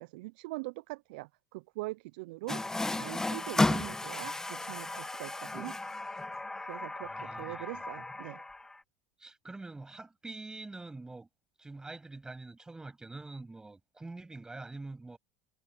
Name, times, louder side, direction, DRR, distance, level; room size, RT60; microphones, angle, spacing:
voice 1, 0.0-2.6 3.0-5.8 6.7-8.4, right 22 dB, 65° right, 0.8 m, -42 dB
Water tap faucet, 2.5-8.8, left 2 dB, 10° left, 0.9 m, -34 dB
voice 2, 7.0-7.8 9.2-11.3 11.6-15.2, right 3 dB, 15° right, 7.8 m, -45 dB
hypercardioid pair, 80°, 5 cm